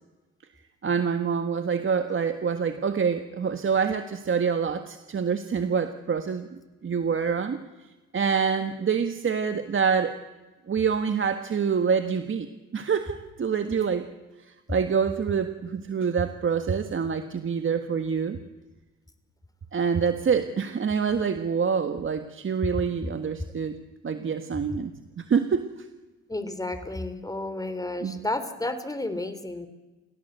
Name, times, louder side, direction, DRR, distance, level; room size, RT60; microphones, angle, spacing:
voice 1, 0.8-7.6 8.1-10.2 10.7-12.5 12.7-14.0 14.5-18.4 19.7-23.7 24.0-25.7 28.0-28.2, right 6 dB, 40° right, 8 dB, 1.6 m, -26 dB
voice 2, 26.3-29.7, left 2 dB, 10° left, 10 dB, 3.4 m, -32 dB
30.0 x 16.5 x 8.2 m, 1.2 s
cardioid pair, 90°, 30 cm